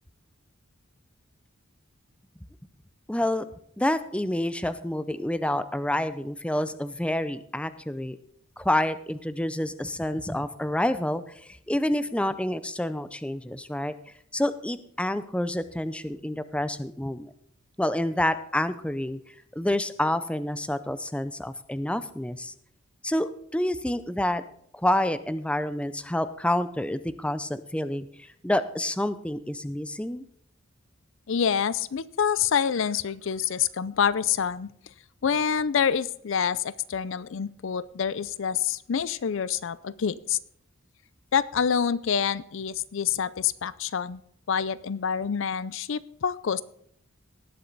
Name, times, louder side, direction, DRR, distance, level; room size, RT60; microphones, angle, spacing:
voice 1, 3.1-3.4 3.8-8.2 8.6-13.9 14.3-17.3 17.8-19.2 19.5-22.5 23.0-24.4 24.7-30.2, left 1 dB, 5° left, 13 dB, 0.5 m, -28 dB
voice 2, 31.3-34.7 35.2-40.4 41.3-44.2 44.5-46.6, left 7 dB, 65° left, 18 dB, 0.5 m, -27 dB
18.5 x 7.7 x 4.0 m, 0.68 s
head